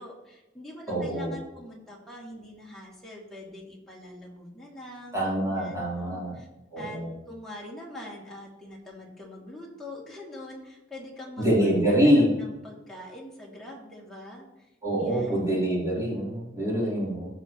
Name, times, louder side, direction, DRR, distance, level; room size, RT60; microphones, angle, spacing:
voice 1, 0.0-6.5 6.8-7.0 7.3-14.7 14.9-15.6 16.8-17.1, left 1 dB, ahead, -5 dB, 2.4 m, -43 dB
voice 2, 0.9-1.3 5.1-6.4 6.7-7.1 11.4-12.3 14.8-17.3, equal, 20° right, -6 dB, 3.4 m, -25 dB
16.0 x 6.4 x 3.0 m, 1.0 s
head